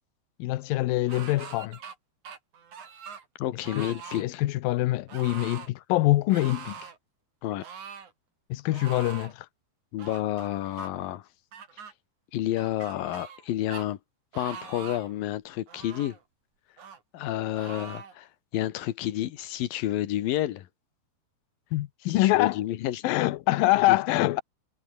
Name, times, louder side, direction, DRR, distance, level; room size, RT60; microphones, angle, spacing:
voice 1, 0.4-1.8 3.8-3.9 4.2-6.8 8.5-9.5 21.7-22.6 23.0-24.4, left 17 dB, 85° left, 2.0 m, -24 dB
sound 1, 1.1-2.0 2.2-3.3 3.6-4.2 5.1-5.7 6.3-7.0 7.6-8.1 8.7-9.3 10.0-10.9 11.5-11.9 12.6-13.4 13.7-13.9 14.3-15.1 15.7-16.2 16.8-17.0 17.6-18.1, right 7 dB, 45° right, 4.0 m, -43 dB
voice 2, 3.4-4.4 7.4-7.7 9.9-11.3 12.3-14.0 14.3-16.2 17.1-20.7 22.0-23.1 23.9-24.3, left 13 dB, 65° left, 2.6 m, -30 dB
omnidirectional pair, 5.3 m